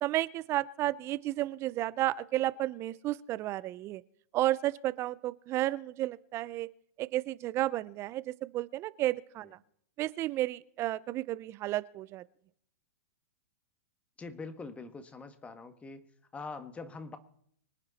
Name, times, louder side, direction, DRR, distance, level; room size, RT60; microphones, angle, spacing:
voice 1, 0.0-4.0 4.3-6.7 7.0-9.6 10.0-12.2, right 15 dB, 30° right, 19 dB, 0.6 m, -32 dB
voice 2, 14.2-16.0 16.3-17.2, left 4 dB, 15° left, 9 dB, 1.6 m, -43 dB
24.5 x 8.9 x 4.2 m, 0.69 s
hypercardioid pair, 115°, 8 cm